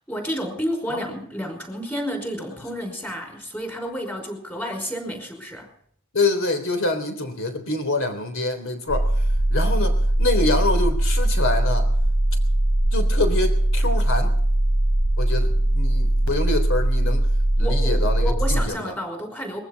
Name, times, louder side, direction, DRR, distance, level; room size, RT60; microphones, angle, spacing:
voice 1, 0.1-5.7 17.6-19.6, equal, 10° left, 4 dB, 5.1 m, -30 dB
voice 2, 6.1-9.2 9.5-11.9 12.9-14.4 15.2-17.3 17.6-18.9, left 2 dB, 60° left, 7 dB, 3.6 m, -26 dB
sound 1, 8.9-18.6, right 1 dB, 85° left, 4.2 m, -20 dB
22.0 x 15.5 x 4.1 m, 0.64 s
head